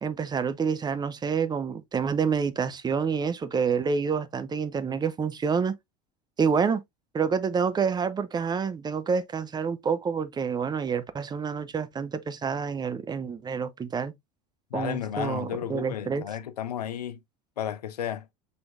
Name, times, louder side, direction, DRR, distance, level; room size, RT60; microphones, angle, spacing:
voice 1, 0.0-5.7 6.4-6.8 7.1-14.1 14.7-16.2, right 6 dB, 20° right, 0.5 m, -28 dB
voice 2, 14.7-17.2 17.6-18.3, left 9 dB, 80° left, 0.6 m, -33 dB
6.0 x 3.4 x 2.4 m
hypercardioid pair, 75°, 20 cm